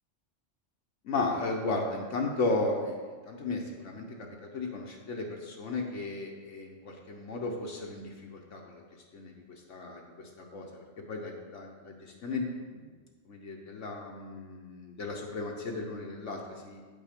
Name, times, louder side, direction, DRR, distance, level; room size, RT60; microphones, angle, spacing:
voice 1, 1.0-4.3 4.5-8.8 9.1-9.3 9.7-12.5 13.3-16.8, left 3 dB, 70° left, 0 dB, 1.3 m, -35 dB
8.9 x 5.6 x 5.2 m, 1.5 s
omnidirectional pair, 1.3 m